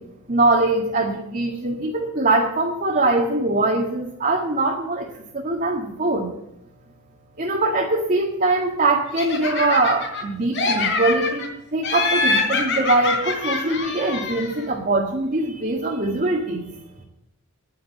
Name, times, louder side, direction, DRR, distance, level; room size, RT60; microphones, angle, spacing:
voice 1, 0.3-5.1 5.3-6.3 7.4-16.7, right 2 dB, 40° right, -1 dB, 1.8 m, -22 dB
Laughter, 9.1-10.2 10.5-11.5 11.8-14.6, left 3 dB, 55° left, 3.6 m, -24 dB
10.5 x 9.8 x 8.4 m, 0.81 s
head